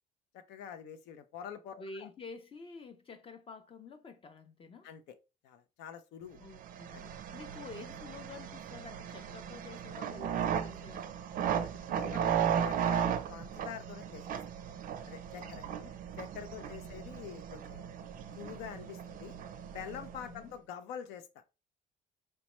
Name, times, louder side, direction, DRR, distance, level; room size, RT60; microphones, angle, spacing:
voice 1, 0.3-2.1 4.8-5.2 5.4-6.4 6.9-7.0 11.5-14.4 15.1-15.6 16.2-17.8 18.4-19.3 19.7-21.4, left 8 dB, 85° left, 0.5 m, -46 dB
voice 2, 1.8-4.9 6.4-7.0 7.3-11.2 15.4-16.0 16.5-17.2 20.2-20.5, left 4 dB, 35° left, 0.5 m, -49 dB
sound 1, 6.5-20.4, right 8 dB, 55° right, 0.4 m, -36 dB
4.1 x 2.2 x 3.0 m
cardioid pair, 110°, 17 cm